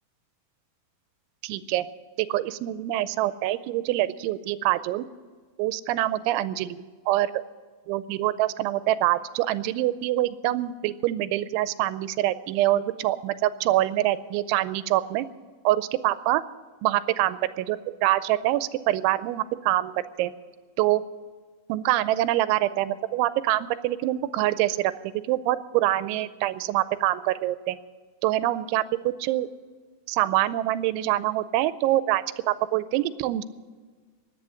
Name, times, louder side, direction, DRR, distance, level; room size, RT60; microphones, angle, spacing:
voice 1, 1.4-1.9 2.2-5.1 5.6-7.4 7.9-15.3 15.6-16.4 16.8-20.3 20.8-21.0 21.7-24.9 25.3-27.8 28.2-29.5 30.1-33.4, right 15 dB, 90° right, 15 dB, 3.0 m, -25 dB
17.0 x 10.5 x 6.3 m, 1.5 s
omnidirectional pair, 5.3 m